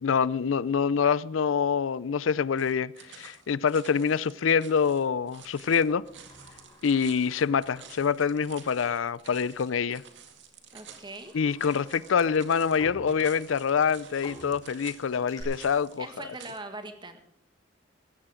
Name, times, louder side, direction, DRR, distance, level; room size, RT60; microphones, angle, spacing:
voice 1, 0.0-6.0 6.8-10.0 11.3-16.1, left 6 dB, 90° left, 0.5 m, -26 dB
sound 1, 2.6-16.6, right 7 dB, 65° right, 2.1 m, -51 dB
Sliding door, 5.4-8.6 9.0-9.1 10.0-10.2 10.7-15.4, left 1 dB, 20° left, 6.6 m, -51 dB
voice 2, 10.7-11.4 16.0-17.2, right 2 dB, 25° right, 1.7 m, -41 dB
15.5 x 15.0 x 5.0 m
head